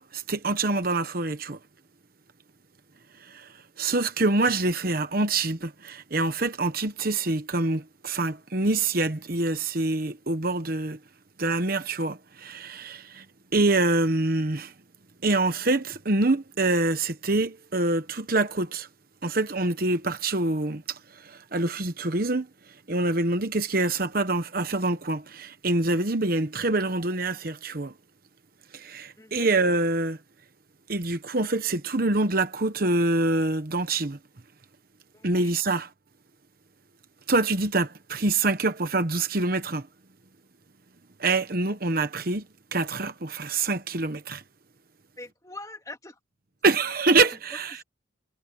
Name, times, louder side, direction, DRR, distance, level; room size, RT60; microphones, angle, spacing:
voice 1, 0.0-1.6 3.3-3.5 3.8-11.0 11.4-13.2 13.5-14.7 15.2-18.9 19.2-21.0 21.2-22.5 22.9-27.9 28.7-30.2 30.9-34.2 35.2-35.9 37.3-39.8 41.2-42.4 42.7-44.4 46.6-47.8, right 2 dB, 50° right, 1.1 m, -25 dB
voice 2, 29.2-29.5 35.1-35.5 45.2-46.2 46.9-47.2 47.7-47.8, left 2 dB, 15° left, 2.9 m, -43 dB
head